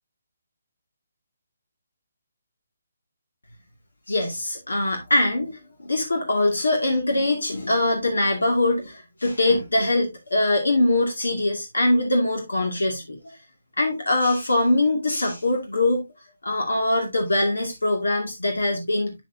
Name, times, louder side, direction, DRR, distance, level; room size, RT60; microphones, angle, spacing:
voice 1, 4.1-13.4 13.8-16.0 16.4-19.2, left 2 dB, 85° left, 2.2 m, -23 dB
9.0 x 6.6 x 2.7 m
figure-of-eight pair, 150°, 0 cm